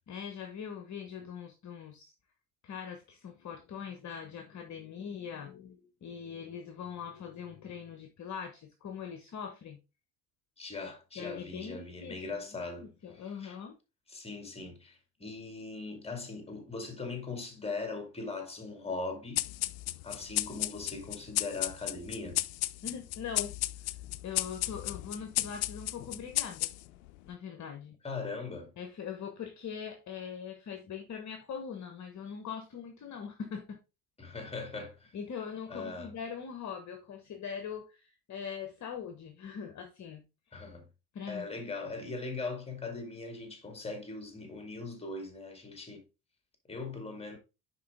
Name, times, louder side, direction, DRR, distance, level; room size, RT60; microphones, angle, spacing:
voice 1, 0.1-2.1 2.6-9.8 11.1-12.4 12.8-13.8 22.8-23.6 24.2-26.7 27.2-28.0 28.8-33.8 35.1-40.2 41.1-41.5, left 7 dB, 35° left, 1.2 m, -42 dB
voice 2, 10.6-13.6 14.1-19.5 20.0-22.4 28.0-28.7 34.2-35.1 35.7-36.1 40.5-40.9 41.3-46.0 46.7-47.4, left 3 dB, 10° left, 2.3 m, -40 dB
sound 1, 19.4-27.1, left 17 dB, 60° left, 0.5 m, -34 dB
10.0 x 4.1 x 3.5 m
figure-of-eight pair, 60°, 49 cm